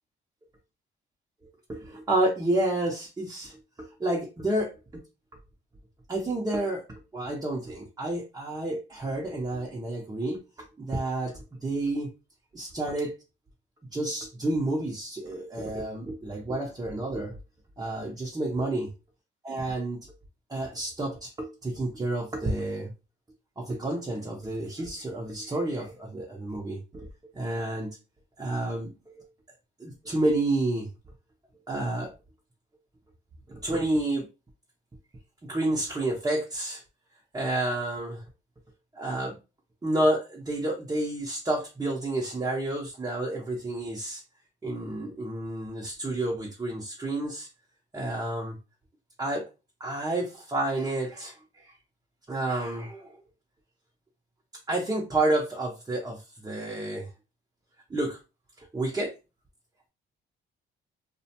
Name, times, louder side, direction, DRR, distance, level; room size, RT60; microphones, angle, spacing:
voice 1, 1.4-5.0 6.1-10.4 10.8-12.1 12.5-13.1 13.9-17.4 17.8-18.9 19.4-20.0 20.5-22.9 23.6-27.9 28.4-29.3 29.8-30.9 31.7-32.1 33.5-34.3 35.4-36.8 37.3-38.2 38.9-39.3 39.8-44.2 44.6-47.5 47.9-48.6 49.2-49.5 49.8-51.7 52.3-53.2 54.7-57.1 57.9-58.2 58.6-59.1, right 2 dB, 20° right, -1 dB, 0.7 m, -30 dB
2.5 x 2.1 x 2.8 m, 0.28 s
cardioid pair, 90°, 20 cm